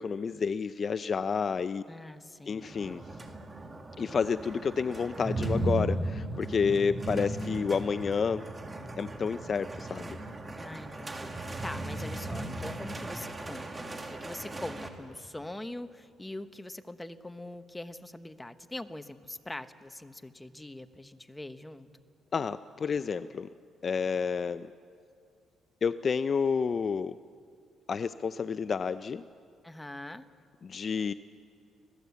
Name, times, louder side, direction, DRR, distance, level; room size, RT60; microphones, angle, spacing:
voice 1, 0.0-1.8 2.5-3.0 4.0-8.4 9.0-10.2 22.3-23.5 23.8-24.7 25.8-27.2 27.9-29.2 30.6-31.1, left 6 dB, 40° left, 13 dB, 0.5 m, -30 dB
voice 2, 1.9-2.8 10.6-21.9 29.6-30.3, left 1 dB, 10° left, 10 dB, 1.0 m, -43 dB
sound 1, 2.6-14.9, right 1 dB, 20° right, 2.3 m, -36 dB
26.0 x 17.0 x 8.3 m, 2.3 s
cardioid pair, 100°, 0 cm